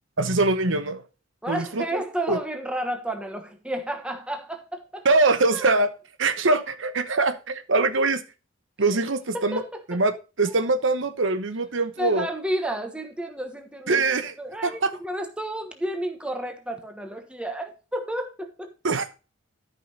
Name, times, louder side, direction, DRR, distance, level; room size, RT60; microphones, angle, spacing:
voice 1, 0.2-1.0 1.5-1.8 2.3-2.4 5.0-5.9 6.2-8.2 8.8-9.6 9.9-12.3 13.9-14.3 14.6-15.0 18.8-19.0, right 3 dB, 70° right, 1.0 m, -23 dB
voice 2, 1.4-5.1 5.5-5.7 9.3-10.0 10.4-10.6 12.0-18.7, right 1 dB, 5° right, 1.3 m, -31 dB
12.5 x 5.6 x 4.0 m
head